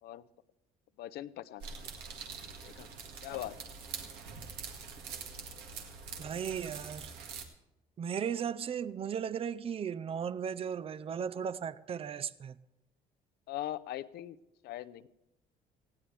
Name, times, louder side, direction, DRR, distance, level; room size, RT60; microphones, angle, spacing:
voice 1, 1.0-1.7 2.6-2.9 3.2-3.6 13.5-14.4 14.6-15.1, left 13 dB, 70° left, 0.6 m, -40 dB
sound 1, 1.6-7.4, right 5 dB, 80° right, 2.0 m, -44 dB
voice 2, 6.2-7.1 8.0-12.6, right 7 dB, 35° right, 0.5 m, -36 dB
19.0 x 15.5 x 3.3 m
cardioid pair, 110°, 17 cm